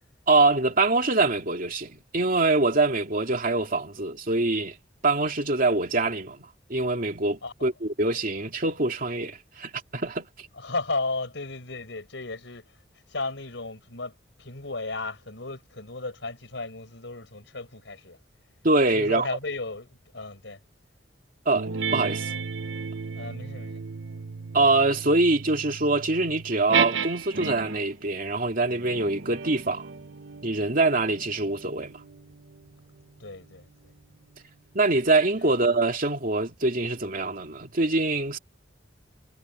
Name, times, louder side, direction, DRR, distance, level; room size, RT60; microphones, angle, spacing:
voice 1, 0.3-4.8 5.0-6.4 6.7-10.3 18.6-19.3 21.5-22.3 24.5-29.9 30.4-32.0 34.7-38.4, right 2 dB, 50° right, 2.7 m, -24 dB
voice 2, 7.4-7.8 10.5-12.7 13.1-18.2 18.9-20.6 23.2-23.8 33.2-33.9 35.3-35.5, left 3 dB, 75° left, 5.6 m, -35 dB
sound 1, 21.5-27.9 28.7-33.6, right 6 dB, 75° right, 0.8 m, -34 dB
head